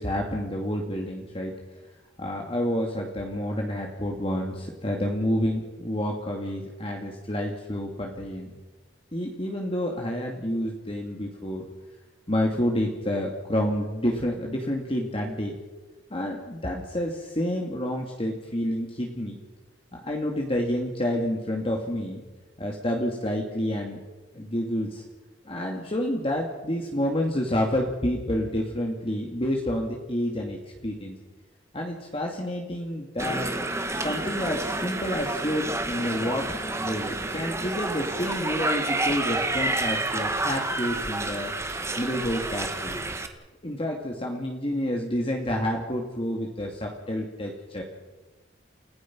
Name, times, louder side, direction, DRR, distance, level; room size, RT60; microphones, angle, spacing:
voice 1, 0.0-1.6 2.2-8.5 9.1-11.7 12.3-15.5 16.1-19.4 19.9-22.2 22.6-24.0 24.3-25.0 25.5-31.2 31.7-33.5 33.9-36.5 36.8-41.5 42.0-43.0 43.6-47.8, left 1 dB, 30° left, 0 dB, 2.2 m, -29 dB
sound 1, 33.2-43.3, right 2 dB, 15° right, 1.6 m, -29 dB
29.5 x 16.5 x 6.1 m, 1.2 s
head